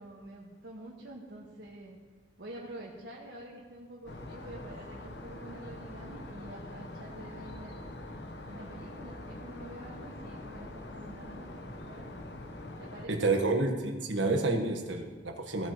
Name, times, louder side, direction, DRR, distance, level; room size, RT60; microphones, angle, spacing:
voice 1, 0.0-2.0 2.4-7.8 8.4-12.2 12.8-13.3, right 1 dB, 70° right, -4 dB, 1.6 m, -47 dB
sound 1, 4.1-13.1, left 1 dB, 65° left, 1.1 m, -44 dB
voice 2, 13.1-15.7, right 2 dB, 90° right, 4 dB, 1.4 m, -29 dB
17.0 x 8.9 x 3.1 m, 1.5 s
head